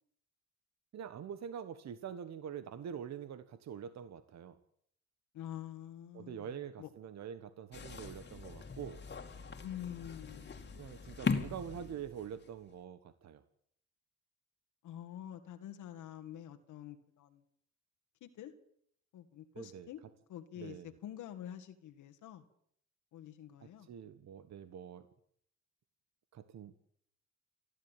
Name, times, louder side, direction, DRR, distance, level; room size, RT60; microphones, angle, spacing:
voice 1, 0.9-4.6 6.1-9.0 10.7-13.4 19.5-19.9 20.5-20.9 23.6-25.1 26.3-26.7, right 8 dB, 65° right, 12 dB, 1.4 m, -45 dB
voice 2, 5.3-6.9 9.6-10.9 14.8-17.4 18.2-18.5 19.1-20.0 20.3-22.4 23.1-23.9, left 11 dB, 80° left, 6 dB, 2.0 m, -47 dB
sound 1, 7.7-12.5, left 4 dB, 35° left, 2.5 m, -40 dB
28.5 x 11.5 x 9.1 m, 0.67 s
cardioid pair, 90°, 30 cm